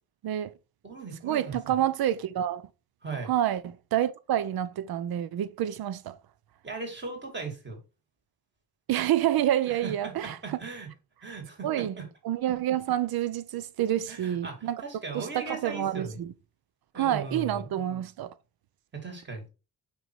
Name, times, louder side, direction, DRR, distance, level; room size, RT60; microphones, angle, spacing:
voice 1, 0.2-0.5 1.2-2.6 3.2-6.2 8.9-10.6 11.6-12.0 12.2-14.8 15.1-16.3 16.9-18.3, right 11 dB, 90° right, 0.7 m, -28 dB
voice 2, 0.8-1.8 3.0-3.3 6.6-7.8 9.8-10.9 11.2-12.1 14.1-14.5 14.8-16.2 16.9-17.6 18.9-19.5, right 4 dB, 30° right, 2.3 m, -38 dB
5.5 x 4.6 x 4.6 m
wide cardioid pair, 160°, 36 cm